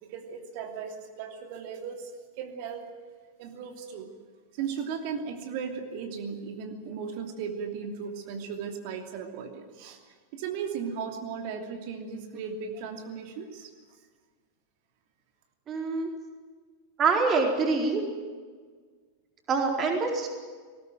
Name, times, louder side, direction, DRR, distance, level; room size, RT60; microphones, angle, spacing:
voice 1, 0.0-2.1 2.4-2.8 3.4-4.1 4.5-13.7, right 6 dB, 45° right, 4 dB, 2.9 m, -36 dB
voice 2, 15.7-16.1 17.0-18.0 19.5-20.3, right 4 dB, 25° right, 2 dB, 4.3 m, -25 dB
19.5 x 19.0 x 9.3 m, 1.5 s
figure-of-eight pair, 90°, 0 cm